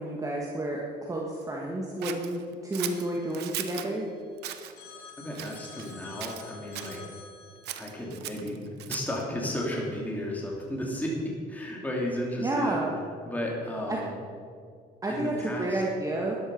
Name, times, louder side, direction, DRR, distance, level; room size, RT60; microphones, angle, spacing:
voice 1, 0.0-4.1 12.4-13.0 13.9-14.0 15.0-16.4, right 1 dB, 20° right, -2 dB, 1.8 m, -30 dB
Scissors, 2.0-3.9 4.4-4.7 5.3-5.9 6.2-7.0 7.6-9.2, right 12 dB, 80° right, 1.0 m, -38 dB
Telephone, 2.9-4.3 4.8-8.1, left 6 dB, 85° left, 2.2 m, -50 dB
voice 2, 5.2-7.0 7.8-8.6 8.9-12.8 13.2-14.1 15.1-15.8, left 1 dB, 10° left, -2 dB, 2.9 m, -33 dB
13.5 x 11.0 x 5.5 m, 2.2 s
cardioid pair, 110°, 17 cm